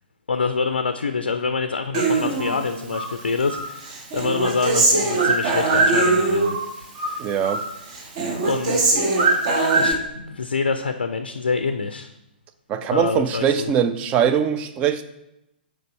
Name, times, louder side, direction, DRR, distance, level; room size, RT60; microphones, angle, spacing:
voice 1, 0.3-7.3 8.5-8.9 9.8-12.1 12.9-13.7, left 4 dB, 70° left, 8 dB, 0.4 m, -26 dB
Human voice, 1.9-3.1 3.5-6.7 6.9-7.7 7.9-9.9, right 3 dB, 40° right, 1.1 m, -21 dB
voice 2, 7.2-7.6 12.7-15.0, right 8 dB, 20° right, 10 dB, 0.4 m, -21 dB
6.6 x 4.6 x 4.3 m, 0.86 s
figure-of-eight pair, 115°, 6 cm